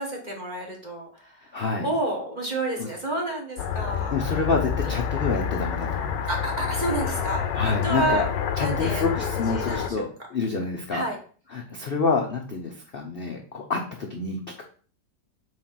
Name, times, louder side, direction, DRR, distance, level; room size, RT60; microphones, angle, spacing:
voice 1, 0.0-1.5 1.8-4.2 4.8-5.0 6.3-8.2 8.6-10.1 10.9-11.2, right 1 dB, 30° right, -1 dB, 1.2 m, -30 dB
voice 2, 1.5-1.9 2.8-2.9 4.1-6.3 7.5-8.3 8.6-11.0 11.5-14.6, left 4 dB, 50° left, 2 dB, 0.7 m, -28 dB
sound 1, 3.6-9.9, left 8 dB, 85° left, 1.4 m, -28 dB
4.7 x 4.2 x 5.7 m, 0.43 s
omnidirectional pair, 1.9 m